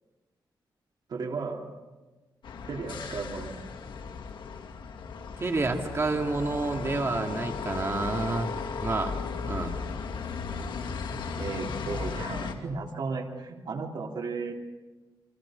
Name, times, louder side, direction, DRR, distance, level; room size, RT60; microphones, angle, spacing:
voice 1, 1.1-1.7 2.6-3.6 11.4-14.5, right 4 dB, 60° right, 1 dB, 3.3 m, -34 dB
sound 1, 2.4-12.5, left 5 dB, 75° left, 2.4 m, -36 dB
voice 2, 5.4-9.1 9.4-9.7, right 3 dB, 30° right, 3 dB, 2.2 m, -29 dB
29.0 x 24.0 x 5.2 m, 1.2 s
cardioid pair, 100°, 8 cm